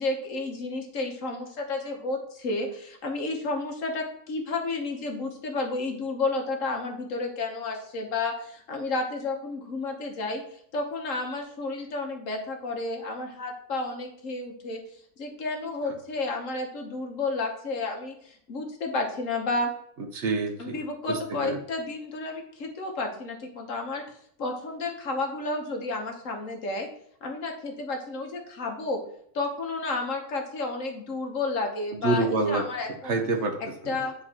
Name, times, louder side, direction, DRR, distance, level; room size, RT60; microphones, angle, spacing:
voice 1, 0.0-14.8 15.2-19.7 20.6-24.0 24.4-26.9 27.2-29.0 29.3-33.2 33.9-34.1, left 3 dB, 75° left, 2 dB, 1.4 m, -31 dB
voice 2, 20.0-20.8 21.1-21.6 31.9-32.7 33.0-34.0, right 3 dB, 60° right, 4 dB, 1.2 m, -27 dB
9.6 x 3.9 x 2.9 m, 0.65 s
omnidirectional pair, 1.4 m